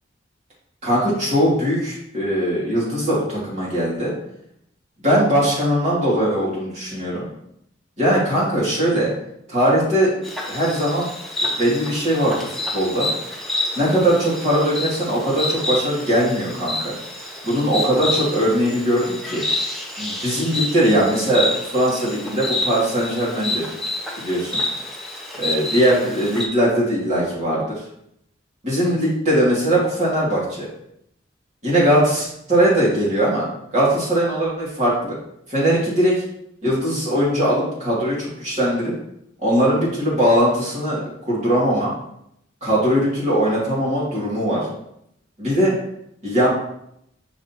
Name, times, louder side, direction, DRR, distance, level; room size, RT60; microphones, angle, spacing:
voice 1, 0.8-4.1 5.0-7.3 8.0-9.1 9.5-10.1 10.5-11.1 11.4-13.1 13.8-16.9 17.4-19.4 20.0-23.7 24.2-24.6 25.4-27.8 28.6-30.7 31.6-33.4 33.7-35.1 35.5-36.2 36.6-38.9 39.4-41.0 41.3-41.9 42.6-44.7 45.4-45.7 46.2-46.5, equal, 35° right, -7 dB, 2.6 m, -20 dB
Insect, 10.2-26.5, left 2 dB, ahead, 0.8 m, -28 dB
5.9 x 5.8 x 3.0 m, 0.75 s
head